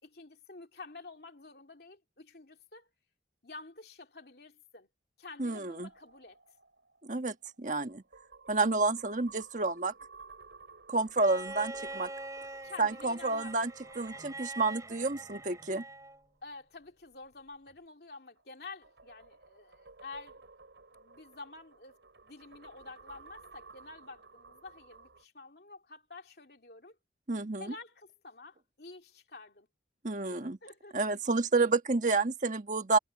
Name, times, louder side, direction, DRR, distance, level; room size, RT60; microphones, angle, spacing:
voice 1, 0.0-2.9 3.4-4.9 5.2-6.4 10.9-11.1 12.6-13.6 16.4-20.4 20.9-22.0 22.2-27.0 27.6-29.7 30.3-31.0, left 3 dB, 60° left, 2.9 m, -49 dB
voice 2, 5.4-5.9 7.0-8.0 8.5-9.9 10.9-12.1 12.8-13.7 14.0-15.8 27.3-27.7 30.0-30.6 30.9-33.0, right 3 dB, 45° right, 1.4 m, -30 dB
sound 1, 5.8-16.4 18.4-25.2, right 4 dB, 85° right, 4.4 m, -55 dB
Bowed string instrument, 11.2-16.2 17.7-17.8, right 2 dB, 20° right, 4.3 m, -44 dB
head